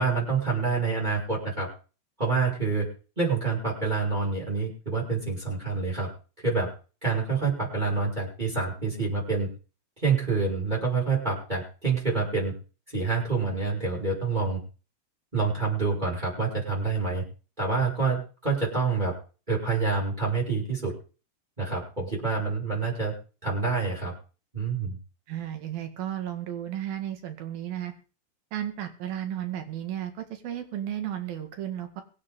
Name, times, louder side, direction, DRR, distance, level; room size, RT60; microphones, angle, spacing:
voice 1, 0.0-1.7 2.2-2.9 3.2-6.1 6.4-6.7 7.0-9.5 10.0-12.5 12.9-14.6 15.3-17.2 17.6-19.2 19.5-20.9 21.6-23.2 23.4-24.1 24.5-25.0, right 4 dB, 10° right, -3 dB, 5.8 m, -27 dB
voice 2, 25.3-27.9 28.5-32.0, right 11 dB, 80° right, 6 dB, 3.8 m, -34 dB
23.5 x 9.5 x 3.9 m, 0.37 s
omnidirectional pair, 4.1 m